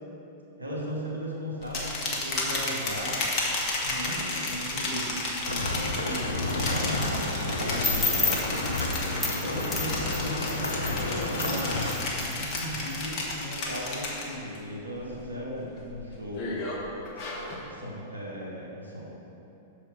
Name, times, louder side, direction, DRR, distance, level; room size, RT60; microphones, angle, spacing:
voice 1, 0.6-3.2 3.8-5.1 5.5-8.5 9.4-11.7 12.2-16.6 17.6-19.1, equal, 90° right, -4 dB, 1.3 m, -36 dB
sound 1, 1.6-14.6 14.9-15.3 15.8-17.6, left 2 dB, 40° left, 1.5 m, -33 dB
sound 2, 5.5-11.9, left 2 dB, 80° left, 0.8 m, -31 dB
sound 3, 7.8-13.0, left 3 dB, 5° left, 1.0 m, -32 dB
6.8 x 4.8 x 5.9 m, 2.9 s
figure-of-eight pair, 100°, 0 cm